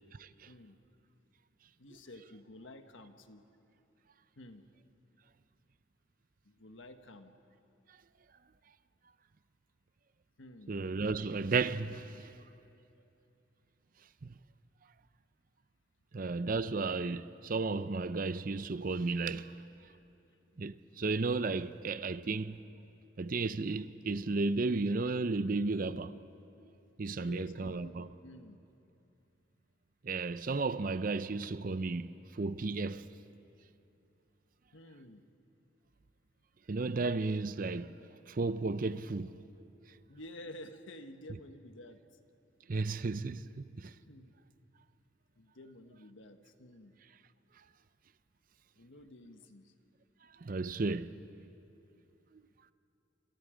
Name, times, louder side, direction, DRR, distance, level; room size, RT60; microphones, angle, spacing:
voice 1, 0.5-0.8 1.8-3.4 4.4-4.6 6.4-7.3 10.4-10.8 27.1-28.6 34.7-35.2 40.1-42.0 44.1-44.3 45.3-46.9 48.8-49.7, left 1 dB, 70° left, 1.4 m, -51 dB
voice 2, 10.7-12.3 14.2-14.3 16.1-19.5 20.6-22.6 23.2-26.1 27.0-28.1 30.0-32.1 32.3-33.0 36.7-37.9 38.3-39.3 42.7-43.9 50.4-51.1, right 3 dB, 45° right, 0.5 m, -33 dB
28.0 x 26.5 x 5.1 m
head